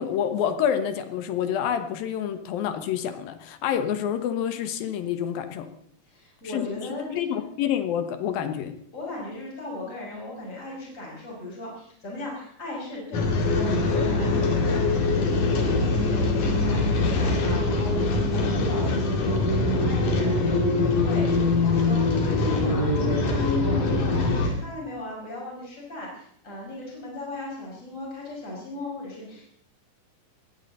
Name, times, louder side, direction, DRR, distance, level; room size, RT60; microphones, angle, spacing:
voice 1, 0.0-5.7 6.5-6.7 7.1-8.7, left 9 dB, 80° left, 9 dB, 3.0 m, -27 dB
voice 2, 6.0-7.1 8.9-13.2 13.5-29.5, left 2 dB, 20° left, -3 dB, 6.0 m, -37 dB
sound 1, 13.1-24.5, left 3 dB, 60° left, 3.7 m, -23 dB
20.5 x 15.5 x 4.0 m, 0.67 s
omnidirectional pair, 4.2 m